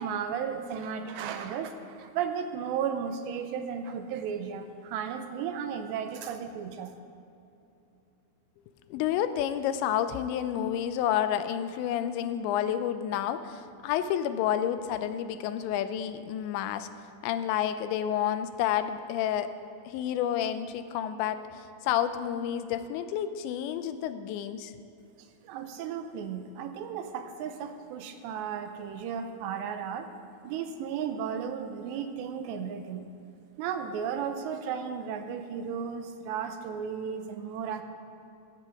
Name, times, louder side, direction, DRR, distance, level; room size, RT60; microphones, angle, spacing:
voice 1, 0.0-6.9 25.2-30.1 30.4-33.0 33.6-37.8, right 7 dB, 85° right, 7 dB, 2.8 m, -34 dB
voice 2, 8.9-16.9 17.2-19.5 19.9-24.7, left 10 dB, 85° left, 11 dB, 2.8 m, -30 dB
17.0 x 13.5 x 3.6 m, 2.7 s
omnidirectional pair, 5.2 m